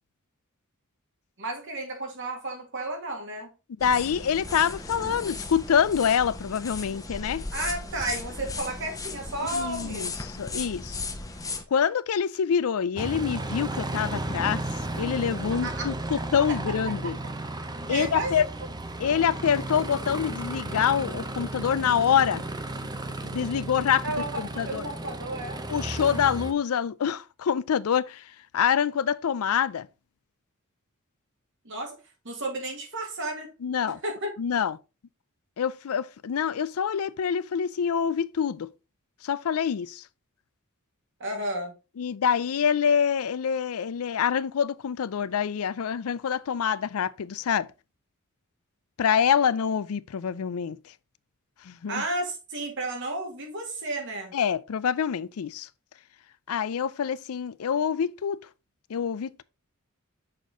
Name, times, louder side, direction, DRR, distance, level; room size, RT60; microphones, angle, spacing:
voice 1, 1.4-3.5 7.5-10.3 15.5-15.9 16.9-17.1 17.9-18.4 24.0-25.6 31.6-32.0 32.2-33.5 34.0-34.3 41.2-41.7 51.9-54.3, right 2 dB, 60° right, 2.1 m, -33 dB
voice 2, 3.8-7.4 9.5-11.0 11.7-14.6 14.9-17.2 17.9-18.5 19.0-22.5 23.2-24.1 24.4-24.9 25.7-29.9 33.6-34.0 34.4-34.8 35.6-38.7 39.2-40.0 42.0-47.7 49.0-50.8 51.6-52.1 54.3-55.7 56.5-58.4 58.9-59.4, left 7 dB, 90° left, 0.4 m, -26 dB
sound 1, 3.8-11.6, left 3 dB, 15° left, 0.9 m, -36 dB
Aircraft, 13.0-26.5, right 2 dB, 20° right, 0.6 m, -34 dB
6.5 x 4.2 x 3.7 m
head